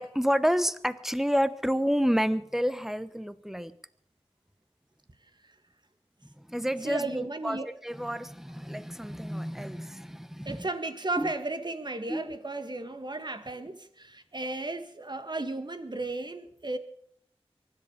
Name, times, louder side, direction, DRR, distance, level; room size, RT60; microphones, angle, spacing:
voice 1, 0.0-3.7 6.4-10.7 11.2-11.3 12.1-12.4, equal, 5° right, 13 dB, 1.1 m, -29 dB
voice 2, 6.8-7.7 10.5-16.8, right 2 dB, 45° right, 9 dB, 1.8 m, -34 dB
23.5 x 11.0 x 5.3 m, 0.67 s
wide cardioid pair, 60°, 10 cm